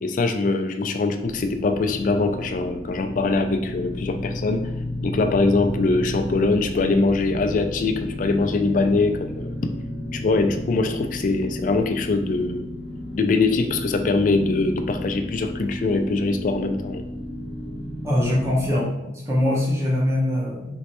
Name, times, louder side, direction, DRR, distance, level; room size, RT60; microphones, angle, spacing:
voice 1, 0.0-4.7 5.0-9.6 10.1-12.7 13.1-17.0, left 3 dB, 45° left, 7 dB, 0.3 m, -22 dB
sound 1, 1.2-18.8, left 1 dB, 60° left, 0.8 m, -33 dB
voice 2, 18.0-20.8, left 1 dB, 15° right, -5 dB, 0.8 m, -23 dB
3.1 x 3.1 x 2.9 m, 0.88 s
head